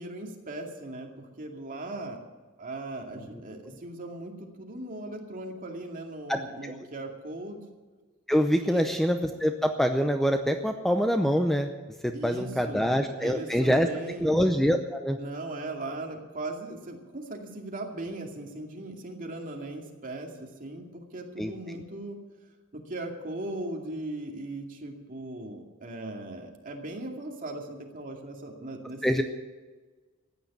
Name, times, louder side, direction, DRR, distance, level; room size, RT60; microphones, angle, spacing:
voice 1, 0.0-2.2 2.6-7.6 8.6-8.8 12.1-14.3 15.2-22.2 22.7-29.2, right 2 dB, 40° right, 1 dB, 2.4 m, -38 dB
voice 2, 8.3-11.7 12.0-13.9 14.2-15.2 21.4-21.5 29.0-29.2, equal, ahead, 6 dB, 0.6 m, -25 dB
14.5 x 9.7 x 7.4 m, 1.3 s
head